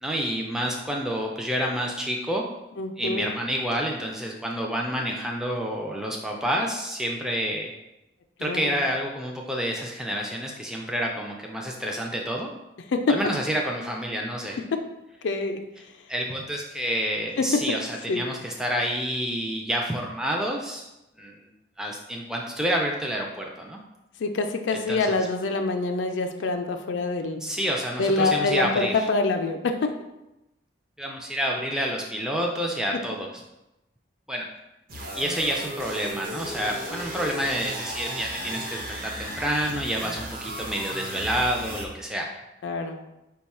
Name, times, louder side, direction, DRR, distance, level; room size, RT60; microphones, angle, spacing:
voice 1, 0.0-2.4 3.0-7.7 8.4-12.5 13.1-14.6 16.1-20.9 21.2-21.3 21.8-23.8 24.7-25.2 27.4-29.1 31.0-33.3 34.3-34.5 35.2-42.3, equal, 5° right, 0 dB, 0.3 m, -28 dB
voice 2, 2.8-3.3 8.4-8.8 12.9-13.0 15.2-15.6 17.4-17.5 18.1-18.2 24.2-27.4 28.0-29.9 42.6-43.0, left 3 dB, 80° left, 5 dB, 0.4 m, -26 dB
sound 1, 34.9-41.9, right 1 dB, 45° right, 0.7 m, -35 dB
5.0 x 2.3 x 4.1 m, 0.94 s
head